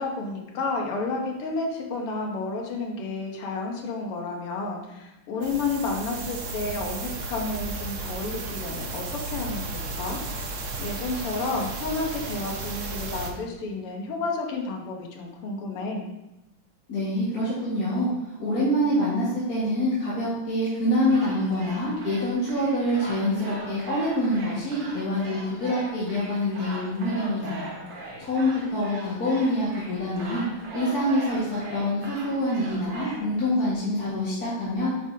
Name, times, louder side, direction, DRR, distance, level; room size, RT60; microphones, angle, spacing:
voice 1, 0.0-10.2 10.8-16.1, left 3 dB, 80° left, 0 dB, 2.1 m, -31 dB
sound 1, 5.4-13.3, right 3 dB, 65° right, 0.7 m, -34 dB
voice 2, 16.9-18.1 18.4-27.7 28.2-30.4 30.7-34.9, left 1 dB, 45° left, -10 dB, 2.1 m, -26 dB
sound 2, 21.0-33.2, right 2 dB, 85° right, 2.5 m, -40 dB
9.9 x 5.3 x 2.8 m, 0.94 s
omnidirectional pair, 2.4 m